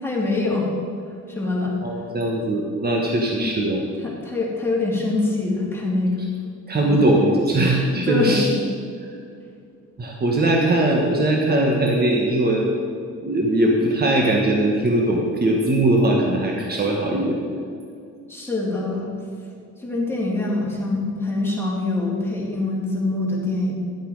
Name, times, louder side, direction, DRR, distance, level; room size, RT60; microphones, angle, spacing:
voice 1, 0.0-0.7 1.3-1.7 3.4-3.5 4.0-6.3 6.9-7.0 8.1-8.4 18.3-19.1 19.8-23.7, left 2 dB, 10° left, -4 dB, 2.9 m, -24 dB
voice 2, 1.8-3.8 6.7-8.5 10.0-12.7 13.2-17.4, right 1 dB, 30° right, -1 dB, 1.5 m, -20 dB
12.0 x 7.9 x 4.9 m, 2.4 s
cardioid pair, 90°, 30 cm